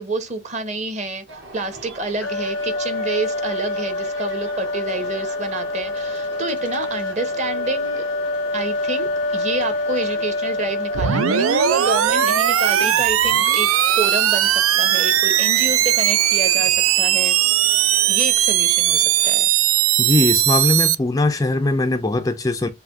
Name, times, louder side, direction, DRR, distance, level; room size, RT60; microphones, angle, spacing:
voice 1, 0.0-8.0 8.5-19.5, right 2 dB, 35° right, 1.0 m, -29 dB
sound 1, 1.3-19.3, right 2 dB, 55° right, 1.4 m, -40 dB
sound 2, 2.2-12.1, left 2 dB, 65° left, 0.6 m, -26 dB
sound 3, 10.9-20.9, right 11 dB, 80° right, 0.5 m, -18 dB
voice 2, 20.0-22.7, left 2 dB, 15° left, 0.4 m, -20 dB
7.5 x 2.7 x 2.6 m
head